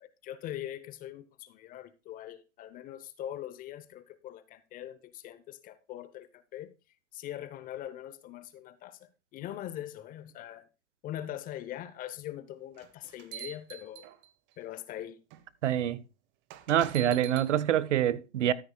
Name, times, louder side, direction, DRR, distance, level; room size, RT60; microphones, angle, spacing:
voice 1, 0.0-6.7 7.1-10.6 11.0-14.1 14.6-15.2, left 12 dB, 25° left, 0.7 m, -42 dB
sound 1, 12.7-14.5 15.3-15.4 16.5-17.5, right 11 dB, 30° right, 0.9 m, -45 dB
voice 2, 15.6-16.0 16.7-18.5, right 11 dB, 75° right, 0.9 m, -26 dB
13.5 x 9.8 x 2.3 m
hypercardioid pair, 125°, 36 cm